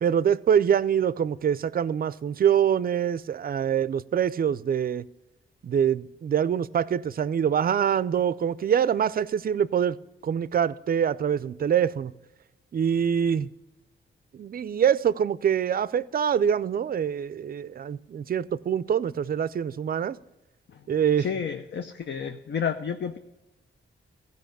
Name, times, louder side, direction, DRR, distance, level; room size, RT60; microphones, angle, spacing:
voice 1, 0.0-5.1 5.6-10.0 10.2-12.1 12.7-13.5 14.3-20.2 20.9-21.3, right 8 dB, 45° right, 0.4 m, -24 dB
voice 2, 21.2-23.2, left 7 dB, 60° left, 0.7 m, -31 dB
15.0 x 5.3 x 6.6 m
cardioid pair, 90°, 21 cm